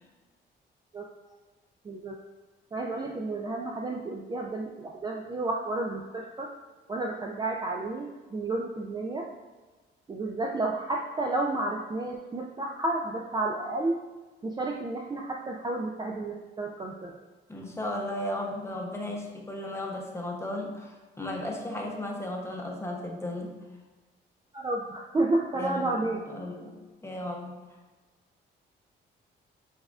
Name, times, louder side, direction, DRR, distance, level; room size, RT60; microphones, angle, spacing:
voice 1, 1.8-2.2 2.7-6.5 6.9-9.3 10.1-14.0 14.4-17.1 24.5-26.3, right 2 dB, 20° right, 0 dB, 0.3 m, -31 dB
voice 2, 17.5-23.5 25.5-27.6, left 1 dB, 15° left, 0 dB, 0.7 m, -35 dB
6.3 x 2.4 x 2.3 m, 1.3 s
cardioid pair, 90°, 20 cm